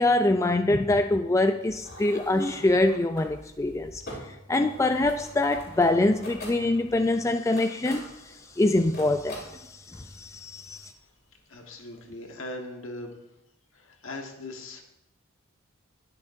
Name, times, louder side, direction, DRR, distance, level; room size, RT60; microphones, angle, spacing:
voice 1, 0.0-4.0 4.5-10.9, left 2 dB, 15° left, 0.3 m, -24 dB
sound 1, 1.7-12.2, left 1 dB, 50° left, 4.4 m, -45 dB
voice 2, 11.5-13.2 13.7-14.8, left 2 dB, 65° left, 1.5 m, -39 dB
20.0 x 6.7 x 2.7 m
head